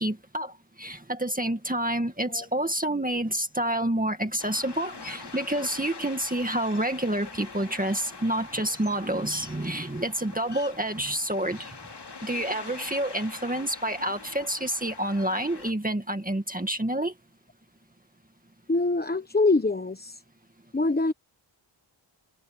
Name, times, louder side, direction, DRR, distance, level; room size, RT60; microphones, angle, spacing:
voice 1, 0.0-11.8 12.2-17.1, right 1 dB, 15° right, 2.0 m, -28 dB
sound 1, 4.4-15.7, left 4 dB, 55° left, 3.3 m, -44 dB
voice 2, 18.7-20.2 20.7-21.1, left 3 dB, 20° left, 1.1 m, -24 dB
wide cardioid pair, 90°, 48 cm